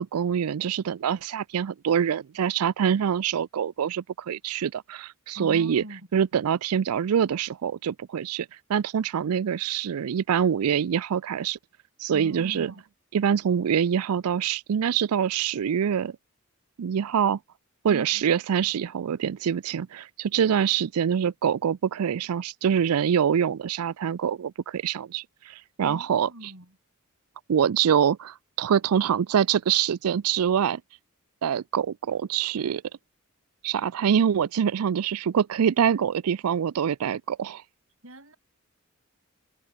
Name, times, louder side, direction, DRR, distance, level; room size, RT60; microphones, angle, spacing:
voice 1, 0.0-5.8 6.1-11.6 12.0-12.7 13.1-16.1 16.8-17.4 17.8-26.5 27.5-30.8 31.4-32.8 33.6-37.6, right 8 dB, 90° right, 0.4 m, -25 dB
voice 2, 5.3-6.0 12.1-12.8 17.9-18.2 25.8-26.7 38.0-38.4, right 1 dB, 65° right, 7.2 m, -40 dB
head